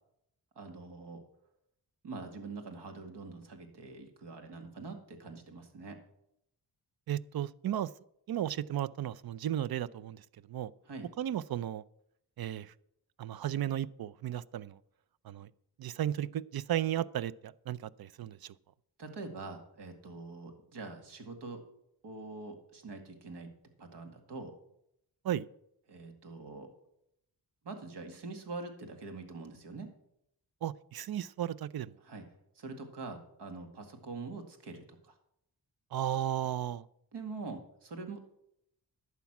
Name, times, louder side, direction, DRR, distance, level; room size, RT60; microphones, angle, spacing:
voice 1, 0.6-1.2 2.0-6.0 10.8-11.1 19.0-21.6 22.0-23.5 23.8-24.5 25.9-26.7 27.6-29.9 32.0-32.3 32.6-35.2 37.1-38.2, right 3 dB, 80° right, 5 dB, 2.1 m, -44 dB
voice 2, 7.1-7.9 8.3-10.2 10.5-10.7 11.2-11.8 12.4-12.7 13.2-14.8 15.2-15.5 15.8-18.5 25.2-25.5 30.6-31.9 35.9-36.9, right 11 dB, 60° right, 17 dB, 0.6 m, -34 dB
11.5 x 8.3 x 6.0 m, 0.76 s
cardioid pair, 75°, 41 cm